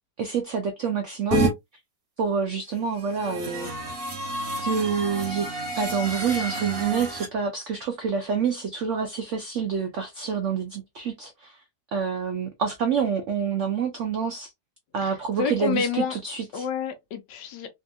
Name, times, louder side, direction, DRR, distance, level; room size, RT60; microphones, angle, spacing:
voice 1, 0.2-1.5 2.2-3.7 4.6-5.5 5.7-11.6 11.9-14.5 14.9-16.7, right 6 dB, 85° right, 0.6 m, -27 dB
sound 1, 1.3-1.5 2.9-7.3, right 2 dB, 35° right, 1.2 m, -29 dB
voice 2, 15.4-16.2 16.5-17.7, left 6 dB, 80° left, 1.4 m, -28 dB
3.3 x 2.7 x 2.2 m
omnidirectional pair, 1.9 m